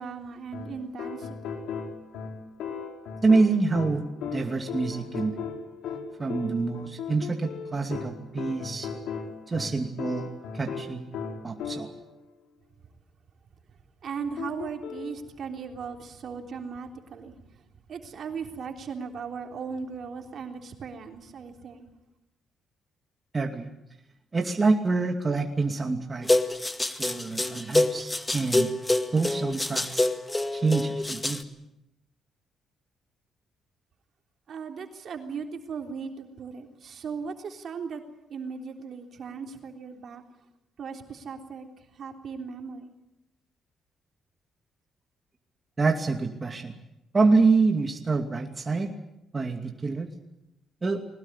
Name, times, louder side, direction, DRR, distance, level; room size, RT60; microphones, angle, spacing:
voice 1, 0.0-1.6 14.0-17.4 17.9-21.9 34.5-38.0 38.3-40.2 40.8-41.7 42.0-42.9, right 5 dB, 60° right, 4 dB, 3.5 m, -37 dB
sound 1, 0.5-12.1 14.4-15.2, left 6 dB, 85° left, 4.1 m, -37 dB
voice 2, 3.2-5.3 6.2-8.9 9.5-11.1 11.4-11.9 23.3-23.7 24.3-26.3 27.0-28.7 29.1-30.0 30.5-31.4 45.8-46.8 47.1-48.9 49.3-50.1 50.8-51.0, right 3 dB, 30° right, 3 dB, 2.5 m, -26 dB
sound 2, 26.2-31.4, left 2 dB, 15° left, 2.0 m, -26 dB
21.5 x 19.0 x 9.9 m, 0.87 s
cardioid pair, 90°, 0 cm